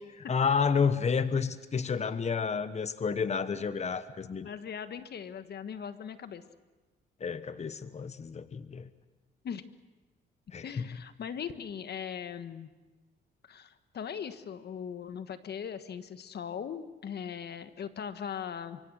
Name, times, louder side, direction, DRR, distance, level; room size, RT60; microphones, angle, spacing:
voice 1, 0.1-4.5 7.2-8.9 10.5-10.9, left 6 dB, 35° left, 13 dB, 1.1 m, -30 dB
voice 2, 4.4-6.4 9.4-9.6 10.6-12.7 13.4-18.8, left 7 dB, 55° left, 11 dB, 1.4 m, -39 dB
25.0 x 24.0 x 6.4 m, 1.2 s
cardioid pair, 90°, 20 cm